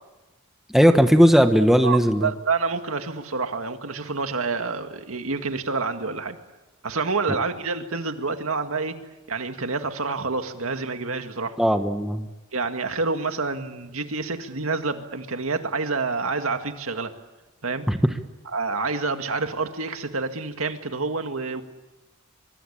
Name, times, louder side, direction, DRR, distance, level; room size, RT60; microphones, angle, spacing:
voice 1, 0.7-2.3 11.6-12.3 17.9-18.0, equal, ahead, 6 dB, 1.2 m, -17 dB
voice 2, 1.8-6.4 6.8-9.0 9.3-11.6 12.5-17.1 17.6-17.9 18.5-21.6, right 4 dB, 75° right, 7 dB, 2.0 m, -28 dB
24.5 x 24.0 x 8.7 m, 1.1 s
head